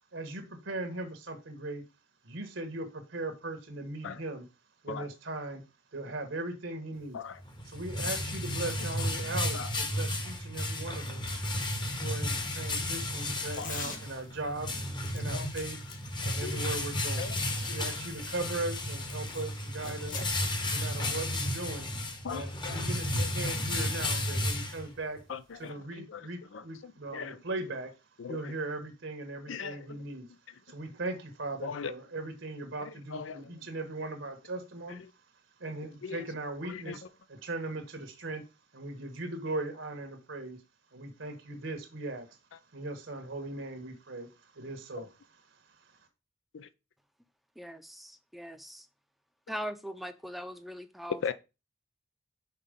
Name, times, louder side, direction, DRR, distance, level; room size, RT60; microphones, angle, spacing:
voice 1, 0.1-1.8 2.2-4.4 4.8-5.6 5.9-7.2 7.7-11.2 12.0-14.7 15.1-15.8 16.2-17.3 17.7-20.2 20.7-21.9 22.3-25.2 25.6-27.9 28.3-30.3 30.7-35.0 35.6-37.0 37.3-38.4 38.7-40.6 40.9-42.3 42.7-45.1, right 2 dB, 75° right, 1.3 m, -38 dB
sound 1, 7.4-25.2, left 1 dB, 25° left, 1.0 m, -33 dB
sound 2, 12.8-14.4 15.0-19.4 19.8-20.4, left 5 dB, 45° left, 1.4 m, -45 dB
voice 2, 16.2-16.6 17.2-17.4 17.7-17.9 20.1-20.3 22.2-22.8 23.1-23.3 25.3-27.4 28.2-28.5 29.5-30.0 31.6-31.9 32.8-33.5 34.9-35.0 36.0-36.2 36.6-37.0 45.0-45.1 46.5-46.7 51.2-51.3, left 6 dB, 75° left, 0.4 m, -40 dB
voice 3, 47.6-48.9 49.5-51.2, equal, ahead, 0.6 m, -41 dB
5.9 x 4.2 x 5.1 m
head